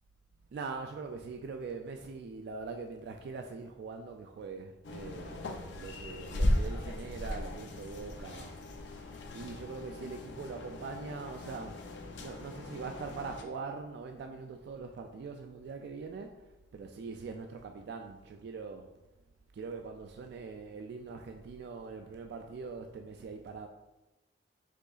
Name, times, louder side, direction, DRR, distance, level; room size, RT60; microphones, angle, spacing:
voice 1, 0.5-8.6 9.3-11.9 12.2-19.0 19.5-23.7, right 4 dB, 65° right, 0.3 m, -42 dB
sound 1, 4.8-13.4, left 1 dB, 75° left, 0.5 m, -37 dB
5.0 x 3.8 x 2.4 m
head